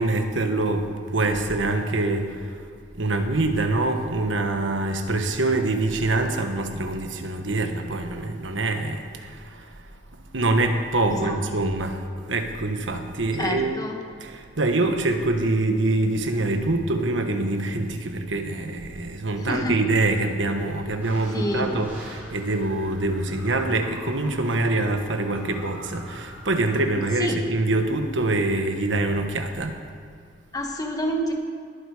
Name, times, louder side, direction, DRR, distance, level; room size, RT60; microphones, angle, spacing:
voice 1, 0.0-2.6 2.9-9.9 10.3-13.8 14.2-29.8, right 2 dB, 80° right, 6 dB, 1.3 m, -25 dB
voice 2, 11.1-11.4 13.4-14.0 19.4-19.8 21.3-21.7 27.2-27.4 30.5-31.3, equal, 20° left, 2 dB, 1.5 m, -28 dB
sound 1, 21.0-27.1, equal, 10° right, 3.3 m, -43 dB
20.0 x 8.3 x 5.0 m, 2.1 s
head